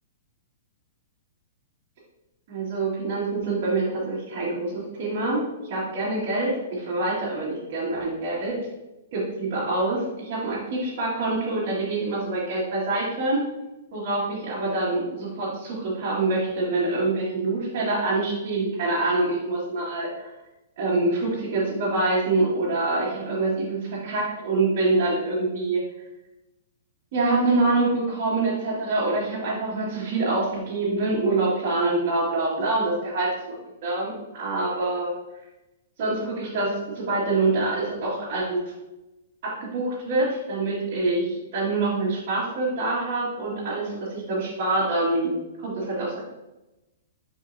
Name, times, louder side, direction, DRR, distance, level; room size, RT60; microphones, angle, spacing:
voice 1, 2.5-8.5 9.1-13.4 13.9-20.3 20.8-25.8 27.1-33.3 33.8-35.1 36.0-38.6 39.4-45.3 45.6-46.2, right 2 dB, 40° right, -11 dB, 2.2 m, -25 dB
7.9 x 5.0 x 2.7 m, 1.0 s
hypercardioid pair, 170°, 0 cm